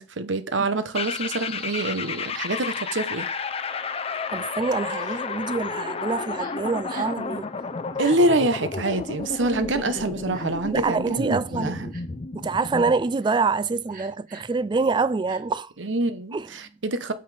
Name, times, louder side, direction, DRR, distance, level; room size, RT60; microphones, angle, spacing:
voice 1, 0.0-3.3 8.0-11.9 15.8-17.1, right 2 dB, 75° right, 1.1 m, -26 dB
sound 1, 0.9-13.0, left 4 dB, 30° left, 0.6 m, -32 dB
voice 2, 4.3-7.5 10.7-11.9 12.3-15.7 16.3-16.5, right 4 dB, 25° right, 0.3 m, -26 dB
Crying sobbing, 6.4-6.5 6.9-7.2 7.9-8.2 8.8-9.0 9.9-10.6 11.2-11.3 11.9-12.2 12.6-12.8 13.2-13.4 13.9-14.5 15.3-15.4, right 1 dB, 45° right, 2.0 m, -44 dB
9.2 x 5.6 x 3.4 m
head